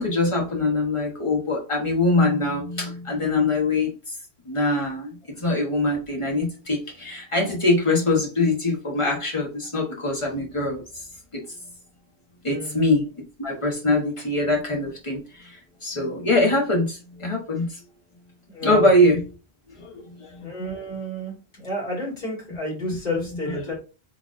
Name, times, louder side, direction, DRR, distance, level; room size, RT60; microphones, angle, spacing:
voice 1, 0.0-3.9 4.5-5.1 5.4-10.8 12.4-13.1 13.4-15.2 15.8-17.7 18.6-19.2 19.8-20.0 20.3-20.4 22.9-23.0, left 2 dB, 30° left, -1 dB, 1.4 m, -23 dB
voice 2, 12.5-12.8 18.5-18.9 20.4-23.7, equal, 55° left, -4 dB, 2.5 m, -30 dB
4.1 x 3.4 x 3.7 m, 0.34 s
omnidirectional pair, 1.1 m